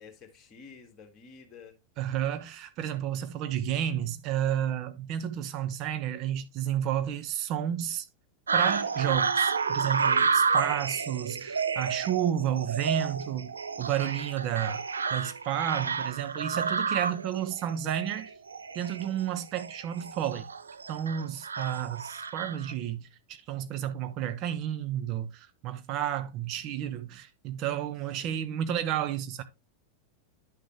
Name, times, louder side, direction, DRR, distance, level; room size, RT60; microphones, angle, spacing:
voice 1, 0.0-1.8 10.2-10.6 28.2-28.5, left 5 dB, 25° left, 1.9 m, -51 dB
voice 2, 2.0-8.1 8.5-14.8 15.1-18.3 18.7-20.5 20.9-29.4, right 10 dB, 40° right, 1.1 m, -31 dB
sound 1, 8.5-22.7, right 5 dB, 75° right, 0.5 m, -30 dB
10.0 x 6.4 x 3.0 m
figure-of-eight pair, 90°, 0 cm